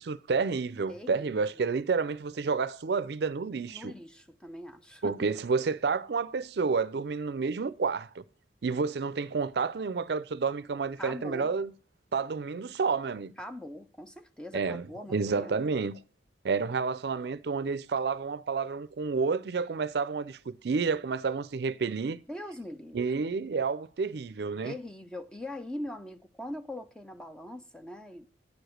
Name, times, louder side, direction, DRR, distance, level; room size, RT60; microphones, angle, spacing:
voice 1, 0.0-3.9 5.0-8.2 8.6-11.7 12.1-13.3 14.5-16.0 16.4-22.2 22.9-24.8, right 4 dB, 65° right, 0.4 m, -30 dB
voice 2, 0.9-1.7 3.7-5.2 11.0-11.5 13.4-15.6 22.3-23.0 24.6-28.3, left 1 dB, 5° left, 0.5 m, -42 dB
9.4 x 4.9 x 6.5 m
head